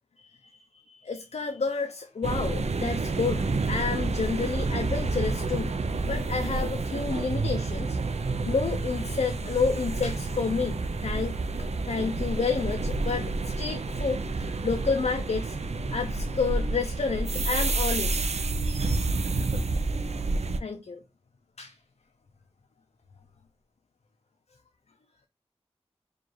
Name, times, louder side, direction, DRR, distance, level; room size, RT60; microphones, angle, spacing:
voice 1, 0.7-5.8 6.1-8.0 8.4-15.6 15.9-18.2 20.6-21.0 21.6-21.7, left 5 dB, 80° left, 0.4 m, -30 dB
sound 1, 2.2-20.6, right 3 dB, 80° right, 0.4 m, -29 dB
4.7 x 2.4 x 3.0 m
wide cardioid pair, 55°, 11 cm